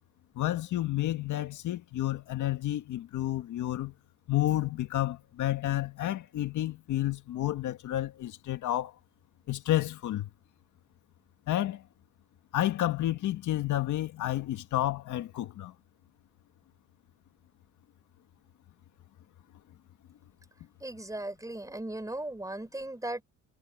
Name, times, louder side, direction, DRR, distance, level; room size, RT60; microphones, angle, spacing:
voice 1, 0.4-3.9 4.3-8.9 9.5-10.3 11.5-11.8 12.5-15.7, left 14 dB, 80° left, 1.8 m, -30 dB
voice 2, 20.8-23.2, right 1 dB, 10° right, 5.5 m, -37 dB
cardioid pair, 90°, 30 cm